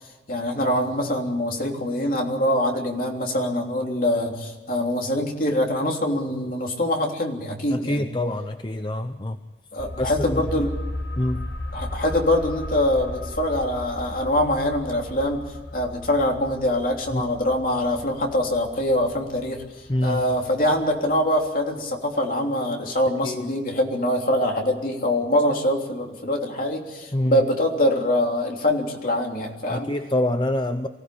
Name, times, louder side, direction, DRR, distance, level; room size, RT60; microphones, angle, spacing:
voice 1, 0.3-8.1 9.7-10.7 11.7-15.5 15.7-29.9, left 1 dB, 50° left, 1 dB, 3.3 m, -24 dB
voice 2, 7.7-9.4 10.0-10.4 11.2-11.5 17.1-17.3 19.9-20.2 23.2-23.5 27.1-27.4 29.7-30.9, left 1 dB, 25° left, 8 dB, 0.7 m, -25 dB
sound 1, 9.8-21.2 21.4-21.5, left 1 dB, 65° left, 4.1 m, -36 dB
24.5 x 16.0 x 8.5 m, 1.3 s
head